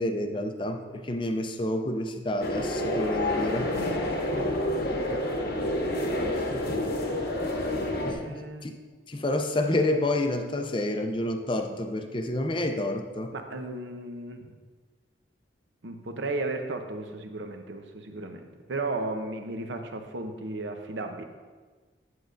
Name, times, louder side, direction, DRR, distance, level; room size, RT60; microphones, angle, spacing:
voice 1, 0.0-3.7 8.0-8.4 8.6-8.8 9.1-13.3, left 1 dB, 25° left, 5 dB, 0.5 m, -29 dB
sound 1, 2.4-8.1, left 1 dB, 55° left, 1.0 m, -28 dB
voice 2, 5.1-5.5 8.0-8.7 13.3-14.6 15.8-21.2, right 2 dB, 70° right, 5 dB, 0.7 m, -35 dB
9.4 x 8.0 x 2.6 m, 1.4 s
head